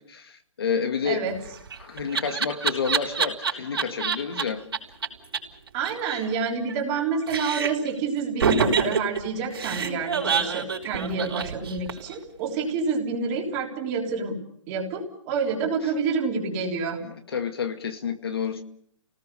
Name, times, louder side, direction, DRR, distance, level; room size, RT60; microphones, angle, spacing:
voice 1, 0.0-1.3 1.8-4.6 17.0-18.6, left 6 dB, 50° left, 2.1 m, -29 dB
voice 2, 1.0-1.3 5.7-14.4 14.7-17.0, right 5 dB, 15° right, 3.6 m, -28 dB
Laughter, 1.3-4.4 4.7-4.8 5.0-5.1 5.3-5.4 5.7-7.0 7.3-7.9 8.4-12.1, right 5 dB, 50° right, 5.4 m, -26 dB
29.5 x 19.0 x 6.9 m
hypercardioid pair, 175°, 16 cm